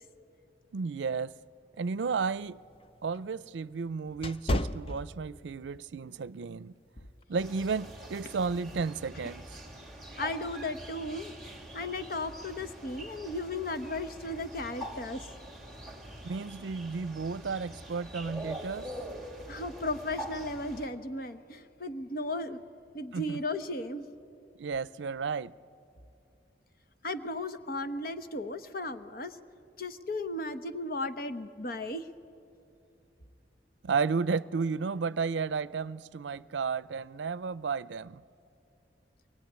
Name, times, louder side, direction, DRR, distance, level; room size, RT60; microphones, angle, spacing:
voice 1, 0.7-1.3 1.8-2.6 3.0-6.7 7.3-9.5 16.2-18.9 23.1-23.4 24.6-25.5 33.8-38.2, right 5 dB, 85° right, 0.5 m, -33 dB
sound 1, 2.0-5.7 6.1-6.4 7.0-7.2, left 1 dB, 30° left, 0.6 m, -34 dB
sound 2, 7.4-20.9, right 1 dB, ahead, 2.7 m, -44 dB
voice 2, 10.2-11.3 11.7-15.3 19.5-22.6 22.9-24.1 27.0-29.4 29.8-32.1, left 2 dB, 55° left, 1.0 m, -35 dB
23.5 x 20.5 x 9.5 m
head